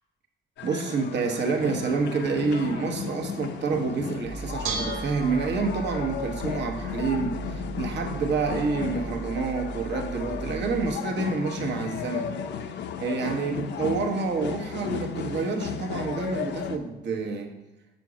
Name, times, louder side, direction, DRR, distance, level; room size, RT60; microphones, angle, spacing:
sound 1, 0.6-16.8, left 7 dB, 65° left, 0.4 m, -35 dB
voice 1, 0.6-12.3 13.0-17.6, right 4 dB, 60° right, 2 dB, 0.9 m, -28 dB
Bell / Dishes pots and pans, 4.2-10.9, right 3 dB, 85° right, 0.8 m, -36 dB
5.2 x 4.4 x 4.8 m, 1.0 s
cardioid pair, 90°, 20 cm